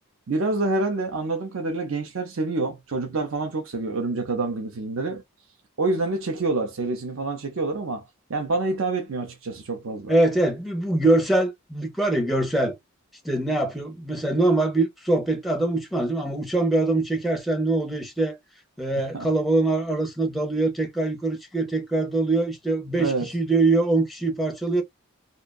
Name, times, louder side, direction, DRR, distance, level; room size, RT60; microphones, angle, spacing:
voice 1, 0.3-5.2 5.8-10.1 19.0-19.3 23.0-23.3, right 3 dB, 65° right, 0.6 m, -27 dB
voice 2, 10.1-12.8 13.2-18.4 18.8-24.8, right 2 dB, ahead, 0.6 m, -23 dB
2.6 x 2.2 x 2.3 m
head